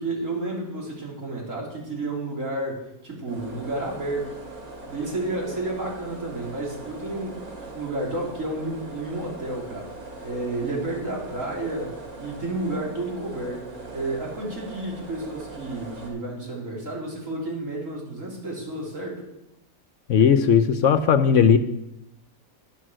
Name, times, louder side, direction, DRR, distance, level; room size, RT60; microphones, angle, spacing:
voice 1, 0.0-4.3 4.9-9.9 10.2-13.7 13.9-19.2, right 2 dB, 65° right, -2 dB, 4.0 m, -31 dB
sound 1, 3.3-16.1, right 2 dB, 90° right, 3.0 m, -41 dB
voice 2, 20.1-21.6, left 7 dB, 65° left, 10 dB, 1.0 m, -17 dB
11.5 x 11.0 x 6.3 m, 0.88 s
omnidirectional pair, 1.5 m